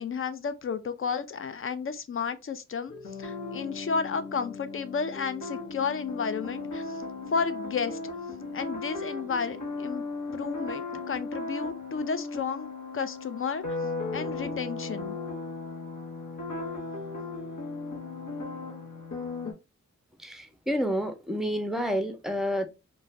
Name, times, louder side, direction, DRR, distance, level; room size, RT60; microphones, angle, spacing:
voice 1, 0.0-2.9 3.2-6.8 7.3-8.0 8.5-10.0 10.3-13.8 14.1-15.2, left 5 dB, 45° left, 0.4 m, -32 dB
sound 1, 2.9-19.5, left 3 dB, 75° left, 0.8 m, -36 dB
voice 2, 20.2-22.7, equal, ahead, 0.5 m, -29 dB
2.5 x 2.1 x 3.1 m
wide cardioid pair, 70°, 30 cm